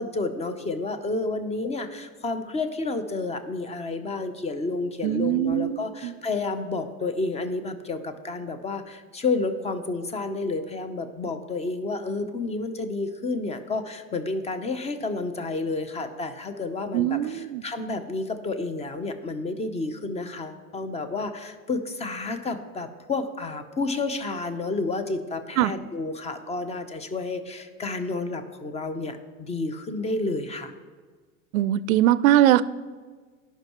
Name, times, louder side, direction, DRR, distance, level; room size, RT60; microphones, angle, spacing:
voice 1, 0.0-30.7, left 3 dB, 15° left, 9 dB, 0.7 m, -30 dB
voice 2, 5.0-6.1 16.9-17.6 25.6-25.7 31.5-32.6, right 13 dB, 75° right, 17 dB, 0.5 m, -21 dB
16.5 x 5.7 x 3.0 m, 1.5 s
hypercardioid pair, 105°, 42 cm